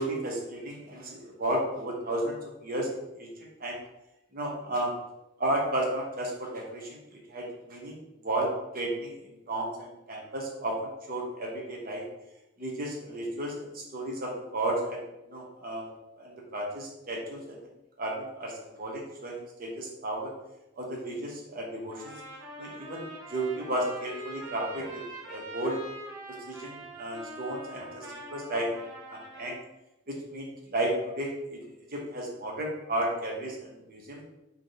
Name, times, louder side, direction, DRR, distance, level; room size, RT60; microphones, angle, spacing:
voice 1, 0.0-3.8 4.3-4.9 5.4-8.5 8.7-12.0 12.6-15.9 16.2-17.7 18.0-20.3 20.8-22.2 22.6-25.8 26.5-29.6 30.1-31.6 31.9-34.2, right 1 dB, 50° right, -1 dB, 1.0 m, -33 dB
Trumpet, 21.9-29.6, right 1 dB, 70° right, 1.3 m, -43 dB
3.5 x 3.0 x 3.9 m, 0.91 s
head